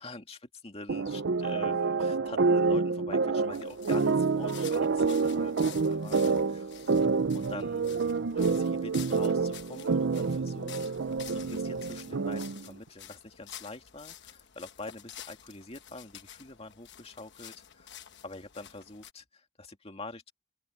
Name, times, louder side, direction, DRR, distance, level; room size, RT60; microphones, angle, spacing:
voice 1, 0.0-5.6 5.9-7.1 7.3-17.9 18.2-20.3, left 2 dB, 30° left, 2.4 m, -45 dB
sound 1, 0.9-12.7, right 4 dB, 60° right, 0.6 m, -28 dB
sound 2, 3.5-19.1, left 10 dB, 55° left, 1.1 m, -50 dB
head